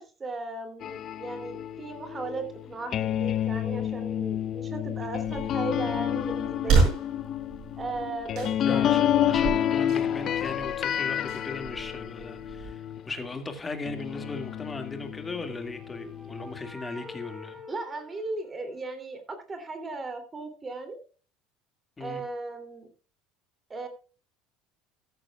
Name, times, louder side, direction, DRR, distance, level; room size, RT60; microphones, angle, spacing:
voice 1, 0.0-6.9 7.8-9.3 17.7-21.0 22.0-22.9 23.7-23.9, right 3 dB, 20° right, 2.9 m, -36 dB
sound 1, 0.8-13.3 13.8-16.7, left 11 dB, 40° left, 0.7 m, -30 dB
sound 2, 5.2-12.7, right 4 dB, 55° right, 6.0 m, -31 dB
voice 2, 8.6-17.6 22.0-22.2, left 3 dB, 15° left, 2.1 m, -37 dB
sound 3, 15.1-19.0, left 2 dB, 5° right, 4.7 m, -47 dB
14.5 x 13.5 x 2.4 m
cardioid pair, 140°, 0 cm